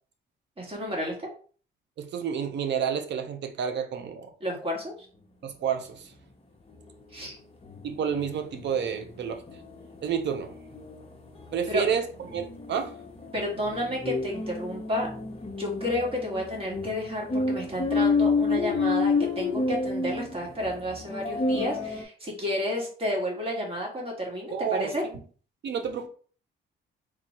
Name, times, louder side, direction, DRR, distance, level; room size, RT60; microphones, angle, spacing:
voice 1, 0.6-1.3 4.4-4.9 7.1-7.4 11.7-11.9 13.3-15.1 15.6-25.0, left 1 dB, 30° right, 1.7 m, -31 dB
voice 2, 2.0-4.3 5.4-6.1 7.8-9.4 10.0-10.5 11.5-12.0 12.3-12.9 24.5-24.9 25.6-26.1, right 7 dB, 60° right, 0.7 m, -29 dB
sound 1, 6.7-6.8 7.2-7.3 7.6-22.0, left 3 dB, 30° left, 0.8 m, -30 dB
3.7 x 2.3 x 4.2 m
cardioid pair, 90°, 20 cm